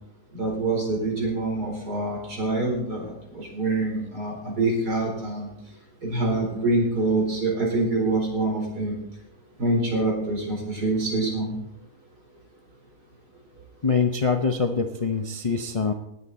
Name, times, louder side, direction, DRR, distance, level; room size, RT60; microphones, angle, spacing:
voice 1, 0.3-5.5 6.0-9.0 9.6-11.5, right 2 dB, 85° right, -1 dB, 4.8 m, -25 dB
voice 2, 13.8-15.9, left 5 dB, 45° left, 5 dB, 0.4 m, -24 dB
19.0 x 8.6 x 4.2 m, 0.83 s
omnidirectional pair, 1.6 m